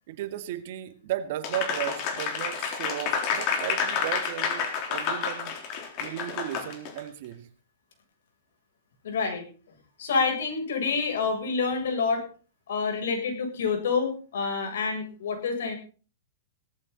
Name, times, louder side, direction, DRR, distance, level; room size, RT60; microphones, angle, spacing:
voice 1, 0.1-5.6 6.0-7.5, right 12 dB, 55° right, 2.1 m, -35 dB
Applause, 1.4-7.0, left 6 dB, 40° left, 3.8 m, -29 dB
voice 2, 9.0-9.4 10.0-12.3 12.7-15.8, left 4 dB, 80° left, 7.7 m, -27 dB
18.0 x 14.5 x 4.2 m
supercardioid pair, 150°, 0 cm